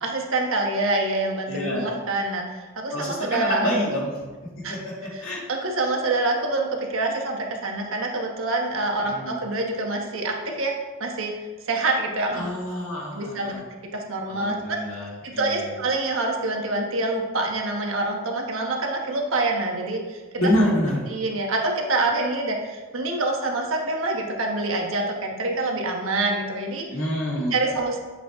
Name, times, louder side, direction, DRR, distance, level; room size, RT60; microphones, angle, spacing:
voice 1, 0.0-4.0 4.6-4.8 5.1-5.2 5.5-10.7 11.0-12.5 13.1-13.6 13.9-14.8 15.2-20.2 21.1-26.8 27.5-28.0, right 2 dB, 65° right, 1 dB, 1.3 m, -26 dB
voice 2, 1.5-1.9 2.9-4.1 4.7-5.4 9.1-9.4 12.3-13.6 14.3-15.7 20.4-21.0 26.9-27.6, left 1 dB, 65° left, -4 dB, 2.6 m, -27 dB
8.9 x 6.8 x 3.6 m, 1.3 s
head